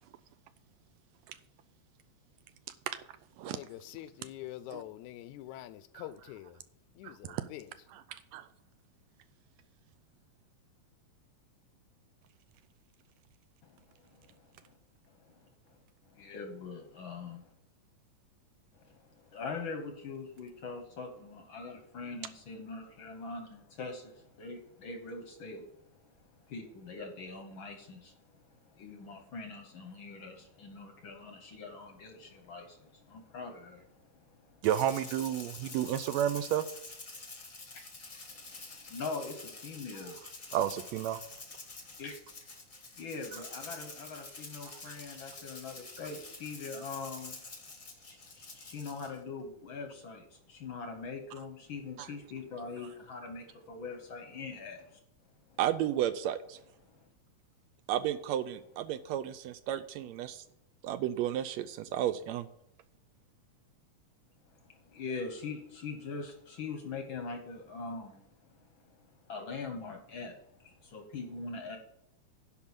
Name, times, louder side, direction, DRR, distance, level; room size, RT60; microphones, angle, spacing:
voice 1, 3.5-6.6 7.0-7.7, left 14 dB, 85° left, 2.0 m, -45 dB
voice 2, 7.0-7.4 7.9-8.5 34.6-36.6 40.5-41.2 44.7-44.9 52.0-52.1 55.6-56.6 57.9-60.4 60.8-62.5, right 11 dB, 80° right, 1.7 m, -32 dB
voice 3, 15.1-15.8 16.0-17.3 18.7-34.6 37.7-37.8 38.2-40.2 42.0-42.2 43.0-47.4 48.0-55.0 55.5-55.6 56.9-57.1 64.5-68.3 68.6-71.8, left 4 dB, 60° left, 1.3 m, -43 dB
Rattle (instrument), 34.6-49.2, left 3 dB, 35° left, 0.8 m, -47 dB
10.5 x 4.7 x 7.2 m
omnidirectional pair, 3.3 m